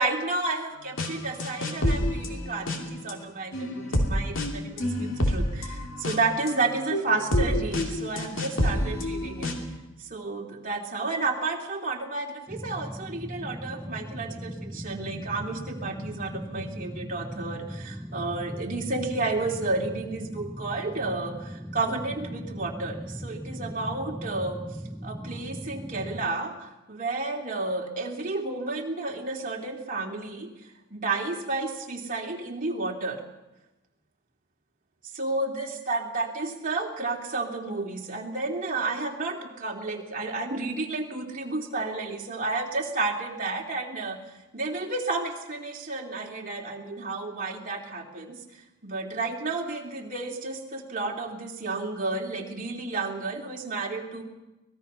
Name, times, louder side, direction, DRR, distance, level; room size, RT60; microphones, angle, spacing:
voice 1, 0.0-9.6 10.0-24.6 25.0-33.2 35.1-44.2 44.5-48.4 48.8-54.2, right 3 dB, 40° right, 0 dB, 2.9 m, -31 dB
sound 1, 1.0-1.1 1.4-3.1 3.5-9.7, left 1 dB, 60° left, 2.8 m, -28 dB
sound 2, 12.5-26.3, equal, ahead, 0.8 m, -38 dB
25.0 x 19.0 x 5.6 m, 1.0 s
head